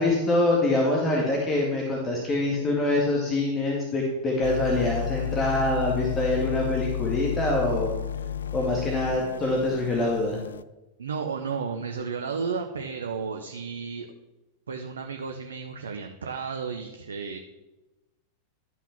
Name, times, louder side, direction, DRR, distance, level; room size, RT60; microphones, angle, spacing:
voice 1, 0.0-8.0 8.5-10.4, left 2 dB, 25° left, -1 dB, 2.0 m, -25 dB
sound 1, 4.4-10.6, left 10 dB, 70° left, 0.4 m, -32 dB
voice 2, 11.0-14.1 14.7-17.4, right 5 dB, 70° right, 4 dB, 0.9 m, -33 dB
12.5 x 5.9 x 5.8 m, 1.0 s
figure-of-eight pair, 90°, 0 cm